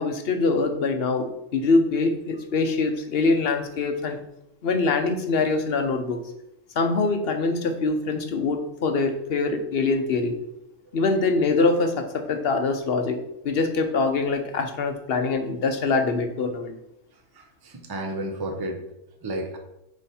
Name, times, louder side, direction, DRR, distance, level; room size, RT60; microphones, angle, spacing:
voice 1, 0.0-4.2 4.6-6.2 6.7-10.4 10.9-16.8, left 3 dB, 55° left, 6 dB, 1.0 m, -24 dB
voice 2, 17.4-18.8 19.2-19.6, right 1 dB, 25° right, 4 dB, 0.6 m, -32 dB
9.3 x 3.1 x 4.2 m, 0.84 s
omnidirectional pair, 1.4 m